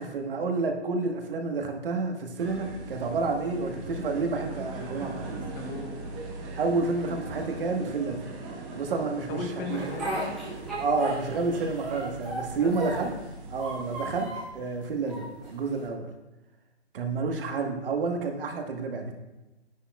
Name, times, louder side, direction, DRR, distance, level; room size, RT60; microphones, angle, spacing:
voice 1, 0.0-5.4 6.6-8.3 8.7-9.4 9.7-9.9 10.8-13.1 13.5-16.1 16.9-19.1, right 4 dB, 55° right, 3 dB, 1.4 m, -29 dB
sound 1, 2.4-14.2, right 2 dB, 20° right, 1.0 m, -40 dB
voice 2, 5.5-6.0 9.3-10.5 12.5-13.1, left 3 dB, 20° left, 2 dB, 1.0 m, -37 dB
Speech, 9.7-11.5 11.8-13.2 13.5-14.5 15.1-15.8, right 2 dB, ahead, 0.4 m, -36 dB
9.9 x 9.2 x 2.3 m, 1.0 s
hypercardioid pair, 150°, 33 cm